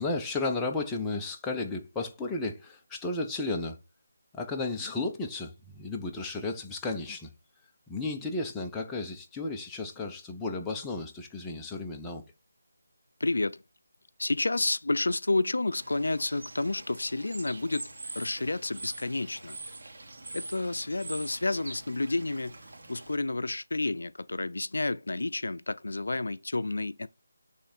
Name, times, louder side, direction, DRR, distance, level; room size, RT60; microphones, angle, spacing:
voice 1, 0.0-3.8 4.3-7.3 7.9-12.2, left 3 dB, 5° left, 0.6 m, -33 dB
voice 2, 13.2-13.6 14.2-17.9 18.2-19.6 20.3-22.5 22.9-27.1, left 2 dB, 80° left, 0.4 m, -30 dB
Bird / Water, 15.7-23.2, right 2 dB, 60° right, 1.7 m, -44 dB
7.9 x 3.2 x 4.3 m
figure-of-eight pair, 170°, 0 cm